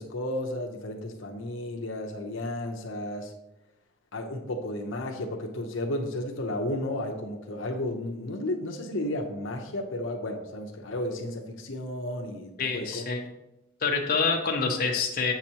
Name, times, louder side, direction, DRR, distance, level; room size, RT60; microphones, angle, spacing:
voice 1, 0.0-3.3 4.1-13.0, left 1 dB, 75° left, 2 dB, 0.8 m, -33 dB
voice 2, 12.6-13.2 13.8-15.3, left 4 dB, 45° left, 0 dB, 0.8 m, -26 dB
7.6 x 5.9 x 2.9 m, 0.90 s
head